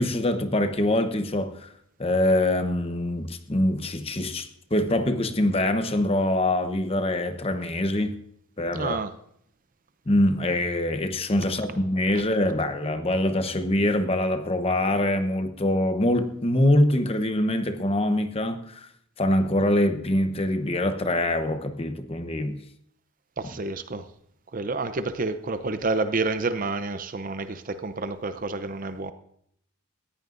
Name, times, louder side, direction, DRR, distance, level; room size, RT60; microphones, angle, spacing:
voice 1, 0.0-1.7 2.0-8.1 8.6-9.0 10.1-18.9 19.2-22.6, left 1 dB, 25° left, 0.9 m, -24 dB
voice 2, 8.7-9.1 23.4-24.0 24.5-29.1, right 3 dB, 40° right, 0.6 m, -29 dB
18.5 x 15.0 x 2.6 m
head